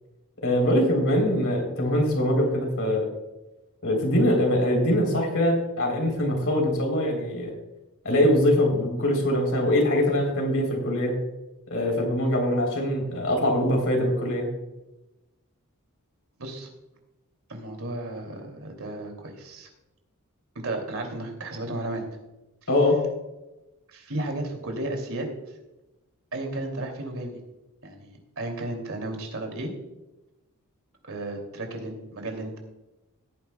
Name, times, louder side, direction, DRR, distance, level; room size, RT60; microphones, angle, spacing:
voice 1, 0.4-3.1 3.8-7.5 8.0-11.1 11.7-14.5 22.7-23.0, left 1 dB, 65° left, 2 dB, 3.6 m, -23 dB
voice 2, 16.4-16.7 17.5-19.7 20.5-22.0 23.9-25.3 26.3-27.4 27.8-29.7 31.1-32.6, right 2 dB, 65° right, 3 dB, 2.7 m, -33 dB
17.5 x 9.9 x 2.3 m, 0.99 s
head